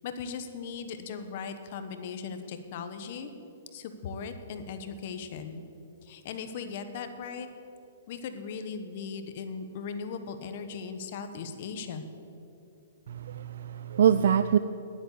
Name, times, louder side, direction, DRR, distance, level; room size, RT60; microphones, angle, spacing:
voice 1, 0.0-3.3 3.7-5.6 6.0-7.5 8.1-12.0, left 5 dB, 45° left, 8 dB, 1.0 m, -38 dB
voice 2, 13.1-14.6, right 8 dB, 70° right, 12 dB, 0.4 m, -24 dB
11.0 x 8.7 x 8.3 m, 2.7 s
hypercardioid pair, 160°, 0 cm